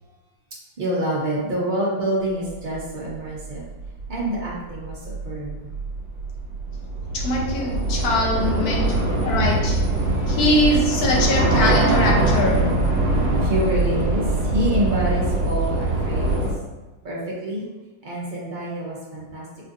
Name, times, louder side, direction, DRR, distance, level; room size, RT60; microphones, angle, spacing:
voice 1, 0.8-3.7 4.1-5.7 9.0-9.5 10.0-10.4 13.4-16.4 17.0-17.6 18.0-19.5, right 1 dB, 85° right, -5 dB, 0.4 m, -27 dB
Train / Subway metro underground, 3.2-3.3 3.5-16.5, right 2 dB, 60° right, 1.1 m, -22 dB
voice 2, 7.1-8.9 9.2-9.8 10.3-12.6, left 1 dB, 65° left, -2 dB, 1.2 m, -22 dB
4.3 x 2.5 x 2.5 m, 1.2 s
omnidirectional pair, 1.9 m